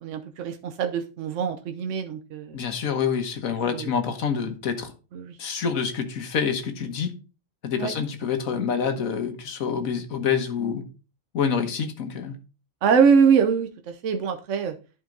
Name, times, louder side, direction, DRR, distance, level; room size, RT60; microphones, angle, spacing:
voice 1, 0.0-2.6 3.7-3.9 5.1-5.3 7.8-7.9 12.8-14.7, right 6 dB, 65° right, 1.1 m, -23 dB
voice 2, 2.5-4.9 5.4-7.1 7.6-10.8 11.3-12.3, left 6 dB, 85° left, 1.6 m, -27 dB
11.0 x 4.4 x 3.8 m
omnidirectional pair, 1.4 m